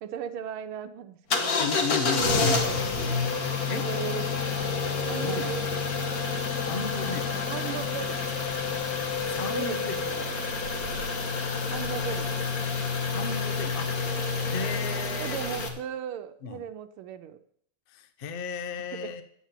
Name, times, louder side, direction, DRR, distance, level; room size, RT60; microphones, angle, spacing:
voice 1, 0.0-1.7 2.0-3.3 3.7-4.4 5.1-5.8 7.3-8.2 9.5-10.4 11.7-12.4 15.2-17.4 18.9-19.1, right 9 dB, 80° right, 11 dB, 1.6 m, -37 dB
sound 1, 1.3-15.7, left 4 dB, 50° left, 1.6 m, -29 dB
voice 2, 1.6-2.7 3.7-3.8 5.2-5.5 6.6-7.3 9.3-10.0 13.0-14.1 14.5-15.4 16.4-16.6 17.9-19.2, left 5 dB, 75° left, 9 dB, 0.5 m, -34 dB
9.6 x 7.3 x 7.4 m, 0.67 s
omnidirectional pair, 2.3 m